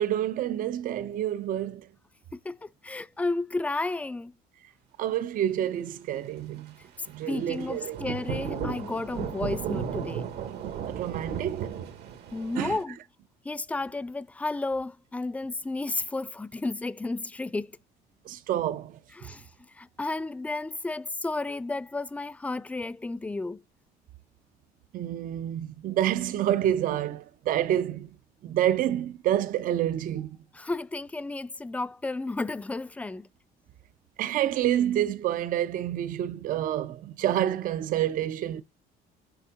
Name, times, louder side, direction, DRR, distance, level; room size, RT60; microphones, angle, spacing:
voice 1, 0.0-1.9 5.0-6.7 7.1-8.0 10.9-11.7 12.6-12.8 18.3-19.0 24.9-28.1 28.4-30.3 34.2-38.6, right 11 dB, 55° right, 0.5 m, -28 dB
voice 2, 2.3-4.3 7.0-10.3 12.3-13.0 13.4-17.8 19.1-23.6 30.5-33.3, left 2 dB, 10° left, 0.3 m, -32 dB
Thunder / Rain, 7.3-12.8, right 7 dB, 75° right, 1.3 m, -35 dB
6.9 x 3.5 x 5.0 m
cardioid pair, 110°, 17 cm